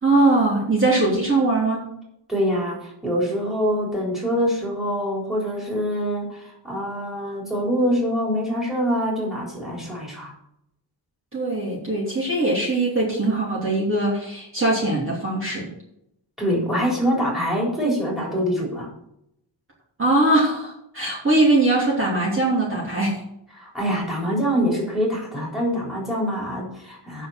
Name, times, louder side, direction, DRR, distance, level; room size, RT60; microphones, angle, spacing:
voice 1, 0.0-1.9 11.3-15.7 20.0-23.2, right 2 dB, 30° right, -4 dB, 3.0 m, -21 dB
voice 2, 2.3-10.3 16.4-18.9 23.6-27.3, equal, ahead, -4 dB, 3.8 m, -24 dB
9.1 x 6.5 x 6.3 m, 0.79 s
wide cardioid pair, 170°, 43 cm